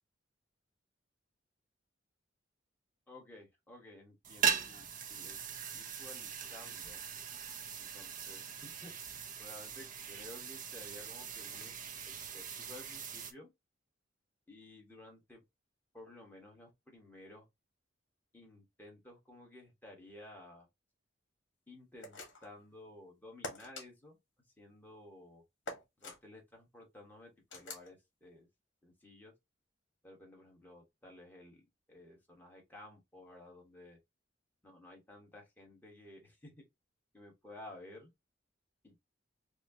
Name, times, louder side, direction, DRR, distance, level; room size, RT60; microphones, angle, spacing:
voice 1, 3.1-7.0 7.8-8.9 9.4-11.8 12.0-13.5 14.5-15.4 15.9-17.5 18.3-20.7 21.7-24.2 24.6-25.4 26.0-28.5 28.8-29.3 30.0-34.0 34.6-36.5 37.1-38.1 38.8-39.0, left 1 dB, 10° left, 1.5 m, -54 dB
sound 1, 4.2-13.3, right 7 dB, 45° right, 0.7 m, -40 dB
sound 2, 22.0-22.6 23.4-23.9 25.7-26.2 27.5-27.9, left 2 dB, 70° left, 1.3 m, -44 dB
4.2 x 2.4 x 2.7 m
head